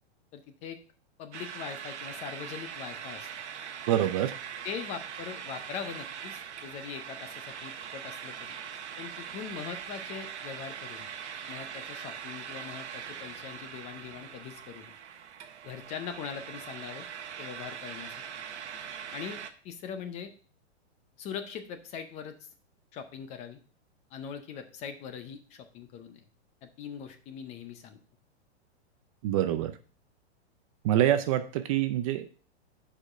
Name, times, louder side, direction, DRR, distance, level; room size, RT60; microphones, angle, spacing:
voice 1, 0.3-0.8 1.2-3.3 4.6-8.6 9.0-11.1 11.5-14.9 15.6-17.1 17.4-18.2 19.1-20.3 21.2-22.5 22.9-23.6 24.1-26.2 26.6-28.0, left 7 dB, 20° left, 9 dB, 0.5 m, -41 dB
sound 1, 1.3-19.5, right 8 dB, 80° right, 1.1 m, -42 dB
voice 2, 3.9-4.3 29.2-29.7 30.8-32.4, right 12 dB, 30° right, 10 dB, 0.4 m, -26 dB
6.5 x 5.0 x 4.8 m, 0.40 s
hypercardioid pair, 145°, 34 cm